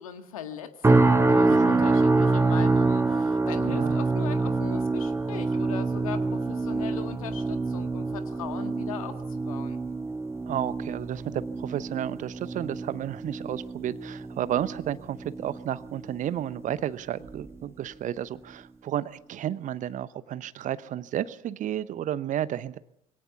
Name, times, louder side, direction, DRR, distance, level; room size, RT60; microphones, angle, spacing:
voice 1, 0.0-9.8, left 9 dB, 75° left, 9 dB, 1.7 m, -40 dB
sound 1, 0.8-16.0 16.4-16.8 17.3-17.5, right 3 dB, 15° right, 1.5 m, -26 dB
voice 2, 1.5-1.8 3.7-4.0 10.5-22.8, right 11 dB, 45° right, 17 dB, 0.9 m, -32 dB
23.5 x 17.5 x 7.2 m, 0.77 s
figure-of-eight pair, 50°, 18 cm